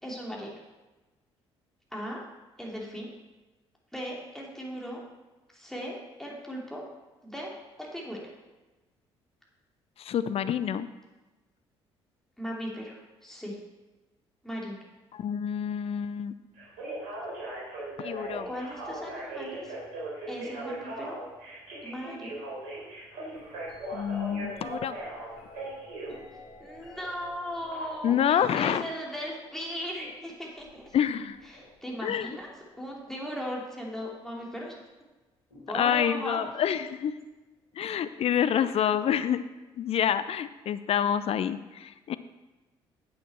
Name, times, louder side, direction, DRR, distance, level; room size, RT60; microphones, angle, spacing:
voice 1, 0.0-0.5 1.9-2.2 2.6-3.1 3.9-5.0 5.5-6.8 7.2-7.5 7.8-8.2 12.4-13.6 14.4-14.8 18.4-19.7 20.3-21.2 21.8-22.3 26.6-30.9 31.5-32.5 32.7-34.8 35.7-36.7, equal, 5° left, -3 dB, 2.9 m, -37 dB
voice 2, 10.0-10.9 15.1-16.3 18.0-18.5 23.9-25.0 28.0-28.9 30.9-31.4 32.0-32.3 35.7-37.1 37.8-39.4 39.8-42.1, left 9 dB, 45° left, 13 dB, 0.5 m, -27 dB
Telephone, 16.6-26.1 27.7-27.8, right 2 dB, 65° right, 3.8 m, -38 dB
sound 1, 23.3-33.4 34.3-34.8 35.5-36.5 38.3-38.4, left 1 dB, 85° left, 2.3 m, -52 dB
9.5 x 8.6 x 4.5 m, 1.1 s
figure-of-eight pair, 45°, 14 cm